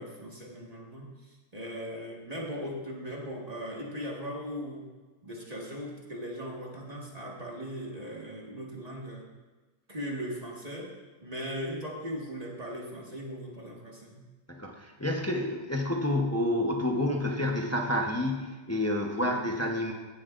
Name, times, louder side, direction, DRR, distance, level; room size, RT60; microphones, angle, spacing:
voice 1, 0.0-4.9 5.2-9.3 9.9-10.9 11.2-14.2, equal, 25° right, -3 dB, 1.6 m, -38 dB
voice 2, 14.5-19.9, left 1 dB, 20° left, 1 dB, 0.4 m, -29 dB
17.0 x 7.6 x 2.5 m, 1.3 s
omnidirectional pair, 1.9 m